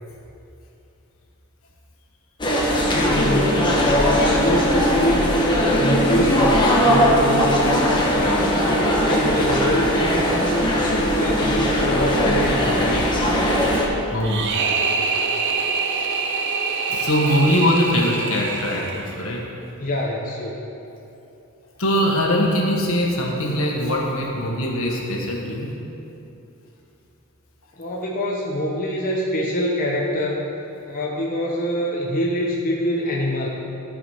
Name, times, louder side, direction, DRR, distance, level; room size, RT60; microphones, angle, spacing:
sound 1, 2.4-13.9, equal, 20° left, 1.2 m, -19 dB
voice 1, 2.9-8.6 9.0-10.4 10.8-13.1 19.8-20.6 27.8-30.5 30.8-33.5, left 1 dB, 40° left, -4 dB, 0.9 m, -25 dB
voice 2, 14.1-14.5 16.9-19.5 21.8-25.7, equal, 70° left, -1 dB, 1.5 m, -22 dB
sound 2, 14.2-19.3, right 4 dB, 55° right, 0.7 m, -25 dB
14.0 x 5.1 x 5.7 m, 2.8 s
head